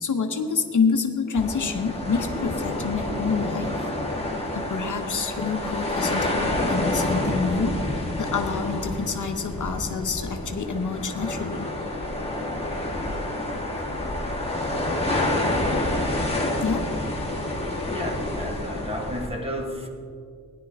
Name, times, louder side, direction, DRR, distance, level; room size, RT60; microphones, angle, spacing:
voice 1, 0.0-3.8 4.5-11.7 16.6-17.1, left 5 dB, 55° left, 5 dB, 0.9 m, -27 dB
sound 1, 1.3-19.3, left 1 dB, 15° left, 1.5 m, -28 dB
voice 2, 17.9-19.9, equal, 15° right, 1 dB, 1.2 m, -32 dB
17.5 x 10.5 x 3.5 m, 2.3 s
wide cardioid pair, 160°, 36 cm